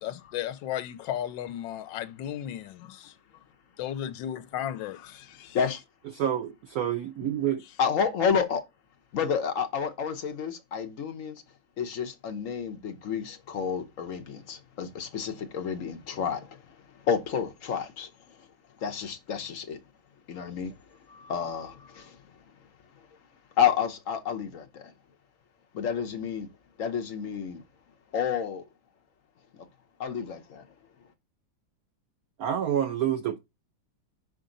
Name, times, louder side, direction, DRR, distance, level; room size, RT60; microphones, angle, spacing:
voice 1, 0.0-3.1 3.8-5.6, left 11 dB, 75° left, 1.3 m, -35 dB
voice 2, 6.1-7.6 32.4-33.4, right 10 dB, 85° right, 0.8 m, -28 dB
voice 3, 7.8-8.6 9.1-11.4 11.8-16.8 17.0-18.4 18.8-19.8 20.3-20.7 21.1-22.2 23.6-24.9 25.7-26.5 26.8-27.6 28.1-28.6 29.5-29.7 30.0-30.6, left 7 dB, 50° left, 1.1 m, -30 dB
5.2 x 5.1 x 3.8 m
omnidirectional pair, 2.1 m